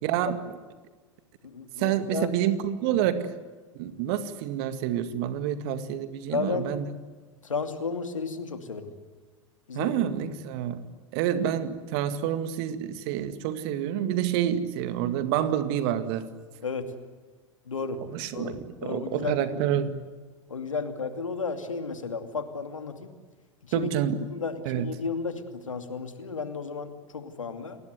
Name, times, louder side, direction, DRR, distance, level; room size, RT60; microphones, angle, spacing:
voice 1, 0.0-0.4 1.8-3.3 3.7-6.8 9.7-10.9 11.1-16.3 18.1-20.0 23.7-24.2 24.7-24.9, right 10 dB, 50° right, 11 dB, 2.1 m, -28 dB
voice 2, 1.4-2.3 2.9-3.0 6.3-6.7 7.4-8.9 9.7-9.9 16.6-16.9 17.6-18.0 18.3-18.5 18.8-19.7 20.5-23.1 23.6-23.9 24.3-27.8, left 4 dB, 80° left, 7 dB, 2.6 m, -33 dB
29.0 x 20.5 x 7.9 m, 1.4 s
figure-of-eight pair, 85°, 16 cm